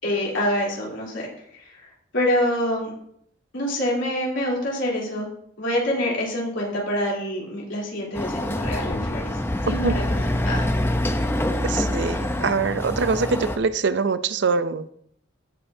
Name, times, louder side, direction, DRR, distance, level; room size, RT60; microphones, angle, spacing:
voice 1, 0.0-1.3 1.5-2.9 3.5-5.3 5.6-9.4 9.6-10.6, left 1 dB, 75° left, 3.1 m, -26 dB
Chatter / Car passing by / Motorcycle, 8.1-13.6, left 1 dB, 10° left, 0.6 m, -25 dB
voice 2, 11.6-14.8, right 4 dB, 65° right, 0.5 m, -23 dB
16.5 x 5.5 x 2.7 m
head